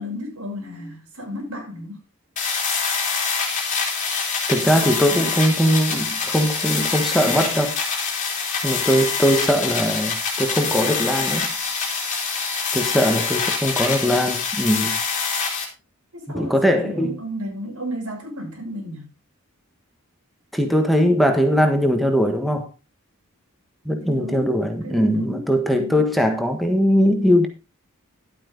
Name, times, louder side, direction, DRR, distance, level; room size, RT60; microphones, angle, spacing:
voice 1, 0.0-2.0 16.1-19.1 24.1-24.5 24.8-26.1, equal, 90° right, 6.7 m, -33 dB
sound 1, 2.4-15.6, left 5 dB, 35° left, 3.4 m, -25 dB
voice 2, 4.5-7.8 8.6-11.5 12.7-15.0 16.3-17.1 20.5-22.7 23.8-27.5, equal, ahead, 1.4 m, -20 dB
11.5 x 8.8 x 3.9 m
head